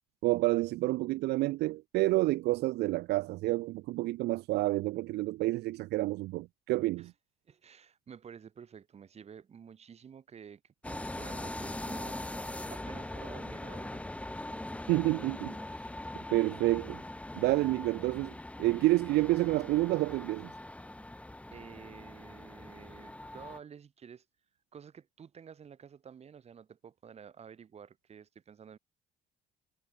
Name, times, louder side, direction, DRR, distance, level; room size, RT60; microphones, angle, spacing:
voice 1, 0.2-7.1 14.9-15.6 16.3-17.0 17.3-18.3 18.6-20.5, right 19 dB, 75° right, 0.5 m, -29 dB
voice 2, 7.5-14.0 21.5-24.3 24.7-28.8, right 7 dB, 40° right, 2.3 m, -51 dB
sound 1, 10.8-23.6, left 1 dB, 5° left, 2.1 m, -42 dB
cardioid pair, 110°, 17 cm